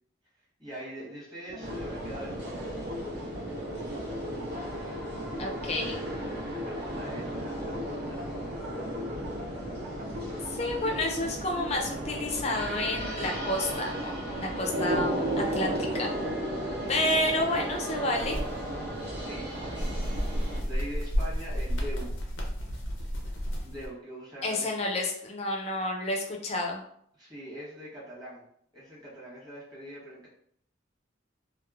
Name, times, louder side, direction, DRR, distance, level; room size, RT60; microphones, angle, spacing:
voice 1, 0.6-2.8 6.6-8.3 8.6-8.9 10.8-11.0 19.2-22.2 23.6-24.7 27.2-28.4 28.7-30.3, equal, 20° right, -7 dB, 1.0 m, -43 dB
sound 1, 1.5-11.3, left 3 dB, 45° right, 0.6 m, -42 dB
sound 2, 1.6-20.6, right 1 dB, 60° right, 0.9 m, -34 dB
voice 2, 5.4-6.0 10.5-16.3 16.9-18.4 24.4-26.8, left 1 dB, 35° left, 1 dB, 0.4 m, -30 dB
sound 3, 18.2-23.9, equal, 85° left, 0.6 m, -32 dB
2.9 x 2.0 x 2.3 m, 0.67 s
head